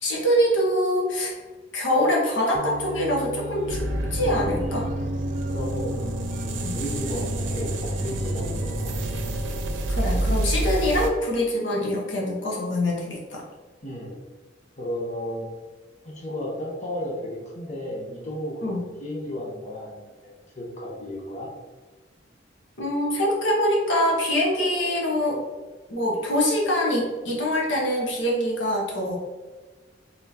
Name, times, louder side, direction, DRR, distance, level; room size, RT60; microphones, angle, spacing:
voice 1, 0.0-1.3 1.7-3.8 4.1-4.9 6.6-6.7 9.9-13.4 18.6-18.8 22.8-25.4 25.9-29.2, equal, 80° left, -3 dB, 1.2 m, -24 dB
sound 1, 2.5-9.4, right 1 dB, 35° right, 0.4 m, -34 dB
sound 2, 3.7-11.1, right 1 dB, 85° right, 0.6 m, -28 dB
voice 2, 5.5-8.9 9.2-9.3 13.8-14.2 14.8-15.5 16.0-21.5, left 1 dB, 40° left, -3 dB, 0.8 m, -34 dB
4.0 x 3.8 x 2.8 m, 1.3 s
head